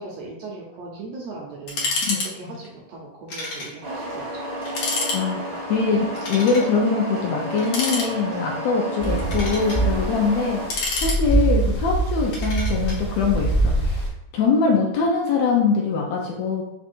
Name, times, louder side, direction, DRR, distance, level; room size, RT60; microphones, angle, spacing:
voice 1, 0.0-1.9 2.3-4.4 9.1-9.4 11.6-11.7, right 3 dB, 75° right, -2 dB, 1.6 m, -38 dB
sound 1, 1.7-2.3 2.5-2.7 3.3-3.7 4.1-4.2 4.6-5.2 6.1-6.7 7.6-8.4 9.0-9.8 10.5-11.6 12.3-13.0, left 3 dB, 60° left, 1.6 m, -28 dB
sound 2, 3.8-10.7, equal, 55° right, 1.2 m, -31 dB
voice 2, 5.7-14.0 14.3-16.6, left 4 dB, 75° left, -1 dB, 1.7 m, -23 dB
sound 3, 9.0-14.1, right 2 dB, 25° left, 0.8 m, -24 dB
5.1 x 2.3 x 4.3 m, 0.88 s
omnidirectional pair, 3.6 m